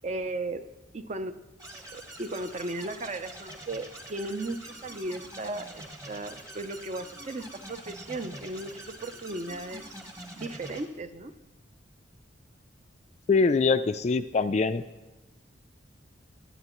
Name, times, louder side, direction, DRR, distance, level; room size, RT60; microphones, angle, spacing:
voice 1, 0.0-0.6 0.9-1.4 1.7-9.9 10.3-11.3, right 2 dB, 35° right, 10 dB, 0.5 m, -36 dB
sound 1, 1.6-10.9, right 1 dB, 15° right, 1.2 m, -45 dB
voice 2, 13.3-14.8, left 4 dB, 35° left, 11 dB, 0.3 m, -23 dB
17.5 x 11.0 x 3.0 m, 1.1 s
head